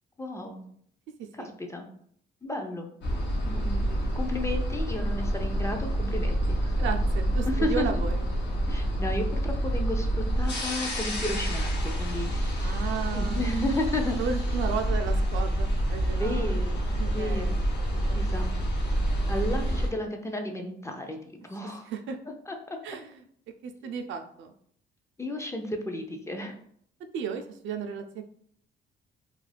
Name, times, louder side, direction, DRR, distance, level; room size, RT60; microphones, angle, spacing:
voice 1, 0.2-0.6 1.4-1.9 2.4-2.9 3.4-6.7 7.4-7.9 8.7-12.7 13.1-14.2 16.1-17.6 18.1-18.5 19.3-21.2 21.5-21.9 22.5-22.8 25.2-26.5, left 1 dB, 15° left, 3 dB, 0.4 m, -33 dB
sound 1, 3.0-19.9, right 1 dB, 65° left, 0.8 m, -27 dB
voice 2, 6.7-8.3 12.6-13.6 14.2-16.5 17.0-17.5 18.0-18.1 21.8-22.2 22.8-23.2 23.6-24.5 27.1-28.2, right 6 dB, 75° right, 6 dB, 0.4 m, -34 dB
2.4 x 2.2 x 3.2 m, 0.63 s
cardioid pair, 90°, 20 cm